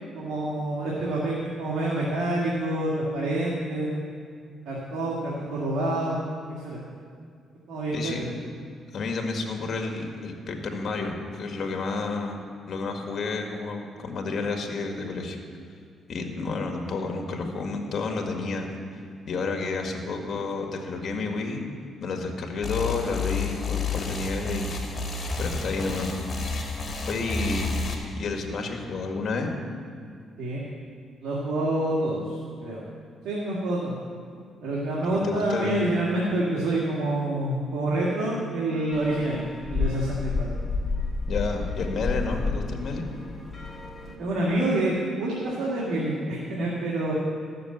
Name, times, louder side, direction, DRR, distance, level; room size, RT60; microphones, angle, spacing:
voice 1, 0.2-4.0 4.7-6.3 6.6-6.8 7.7-8.3 30.4-30.6 31.2-32.8 33.2-34.0 34.6-39.4 39.7-40.5 44.2-47.1, right 1 dB, 80° right, -4 dB, 2.0 m, -27 dB
voice 2, 7.9-8.3 8.9-15.4 16.1-18.7 19.3-21.6 22.0-24.7 25.4-26.1 27.0-29.5 35.1-35.9 41.3-43.1, left 3 dB, 55° left, 3 dB, 1.7 m, -30 dB
sound 1, 22.6-27.9, left 4 dB, 40° left, 2.2 m, -30 dB
sound 2, 38.9-44.2, left 3 dB, 25° left, 1.9 m, -30 dB
13.5 x 6.7 x 7.9 m, 2.2 s
cardioid pair, 90°, 0 cm